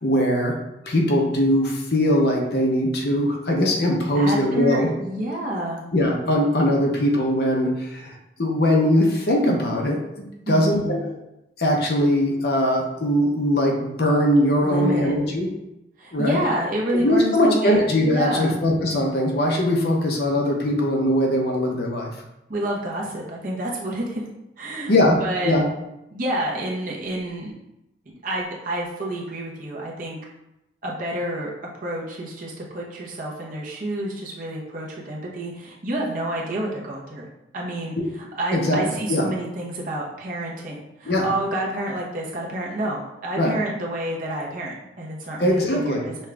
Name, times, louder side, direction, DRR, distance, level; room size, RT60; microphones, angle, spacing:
voice 1, 0.0-0.6 0.8-4.9 5.9-8.1 8.4-11.1 11.6-15.5 16.1-16.4 17.0-22.1 24.9-25.7 38.0-38.1 38.5-38.8 39.1-39.3 41.1-41.3 43.4-43.5 45.4-46.0, left 1 dB, 60° left, 0 dB, 0.8 m, -21 dB
voice 2, 4.1-5.8 10.5-11.1 14.6-15.1 16.0-18.6 22.5-24.2 24.6-25.5 26.1-27.5 28.1-30.2 30.8-37.3 37.5-46.1, right 1 dB, 50° right, -3 dB, 0.9 m, -29 dB
5.5 x 2.4 x 3.3 m, 0.90 s
head